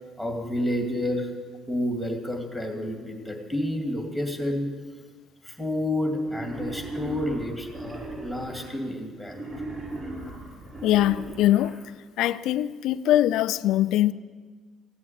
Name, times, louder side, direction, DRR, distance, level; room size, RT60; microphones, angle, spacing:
voice 1, 0.2-1.3 1.7-4.7 5.4-9.4, left 1 dB, 5° right, 2.2 m, -29 dB
Wild animals, 6.2-8.7 9.2-11.7, right 2 dB, 35° right, 6.1 m, -38 dB
voice 2, 10.8-11.8 12.2-14.1, left 13 dB, 70° left, 0.5 m, -22 dB
15.5 x 8.5 x 8.8 m
cardioid pair, 150°, 0 cm